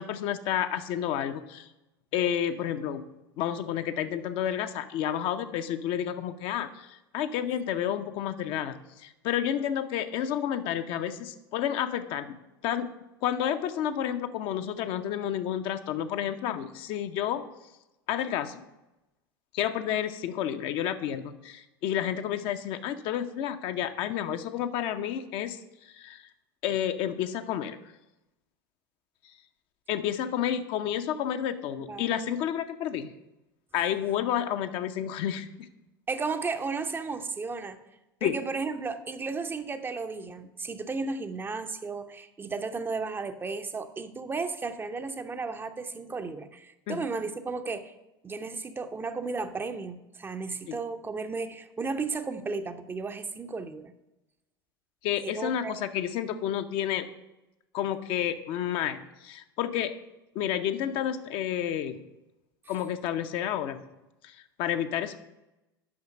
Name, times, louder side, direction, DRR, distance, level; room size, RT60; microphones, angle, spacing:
voice 1, 0.0-1.7 2.1-3.1 3.4-12.4 12.6-12.9 13.2-17.5 18.1-18.6 19.5-26.2 26.6-27.8 29.9-33.1 33.7-35.7 38.2-38.4 46.9-47.0 50.7-50.8 55.0-57.1 57.7-59.9 60.3-62.0 62.7-63.8 64.2-65.2, left 10 dB, 45° left, 9 dB, 0.6 m, -30 dB
voice 2, 36.1-37.8 38.2-47.9 48.2-53.9 55.2-55.9, right 4 dB, 15° right, 9 dB, 0.6 m, -34 dB
8.6 x 5.7 x 6.3 m, 0.97 s
figure-of-eight pair, 75°, 13 cm